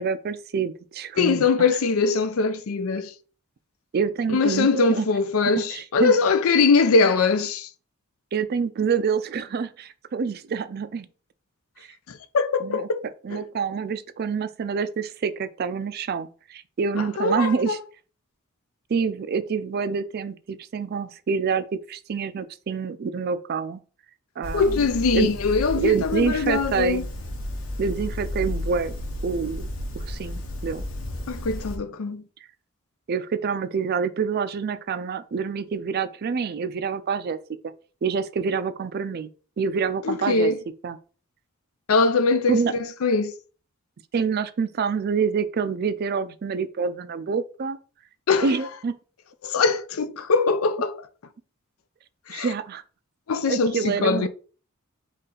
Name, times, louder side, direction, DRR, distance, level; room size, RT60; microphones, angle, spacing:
voice 1, 0.0-1.4 3.9-5.1 5.5-6.1 8.3-11.1 12.6-12.9 13.2-17.8 18.9-23.8 24.4-24.8 25.1-25.3 25.8-27.1 27.8-28.9 29.2-29.7 29.9-30.8 33.1-37.4 38.0-39.3 39.6-40.5 40.8-41.0 42.5-42.7 44.1-47.8 48.4-49.0 52.3-52.8 53.5-54.3, right 5 dB, 50° right, 0.4 m, -27 dB
voice 2, 1.2-3.1 4.3-7.7 12.1-13.0 13.3-13.4 17.0-17.8 24.5-27.1 31.3-32.2 40.0-40.6 41.9-43.3 48.3-48.5 49.4-51.1 52.3-52.5 53.3-54.3, left 4 dB, 90° left, 0.5 m, -22 dB
sound 1, 24.4-31.8, left 1 dB, 70° left, 1.1 m, -33 dB
4.1 x 3.2 x 3.8 m
head